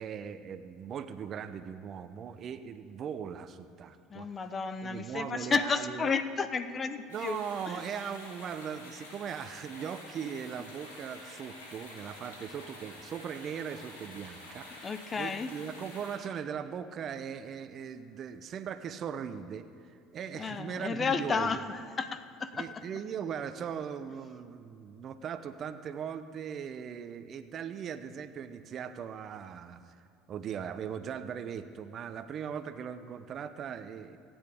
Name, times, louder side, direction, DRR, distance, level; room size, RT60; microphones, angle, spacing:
voice 1, 0.0-4.3 4.8-6.1 7.1-21.6 22.5-30.0 30.3-34.2, right 7 dB, 45° right, 11 dB, 0.7 m, -39 dB
voice 2, 4.1-7.4 10.2-10.3 14.8-15.5 20.3-22.7, left 5 dB, 35° left, 11 dB, 0.8 m, -32 dB
sound 1, 7.1-16.1, left 1 dB, 90° left, 3.6 m, -49 dB
25.5 x 9.0 x 3.5 m, 2.5 s
hypercardioid pair, 75°, 0 cm